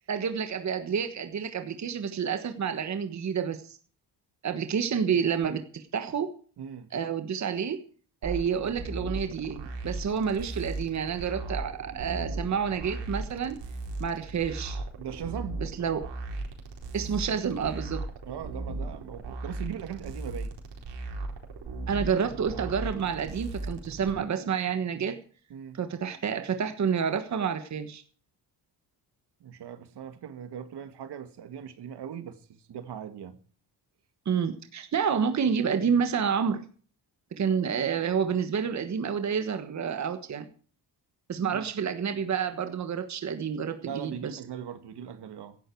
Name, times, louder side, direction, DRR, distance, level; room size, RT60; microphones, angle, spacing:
voice 1, 0.1-3.8 4.4-6.3 6.9-7.8 8.2-13.6 14.0-14.8 15.6-16.1 16.9-18.0 21.9-25.2 25.7-28.0 34.2-36.6 37.4-40.5 41.3-44.1, right 7 dB, 40° right, 1.4 m, -29 dB
voice 2, 6.6-6.9 15.0-15.6 18.2-20.5 25.5-25.8 29.4-33.4 41.5-41.7 43.8-45.6, right 8 dB, 70° right, 1.9 m, -39 dB
sound 1, 8.2-24.1, right 2 dB, 85° right, 4.5 m, -37 dB
16.0 x 12.5 x 4.7 m
wide cardioid pair, 150°, 41 cm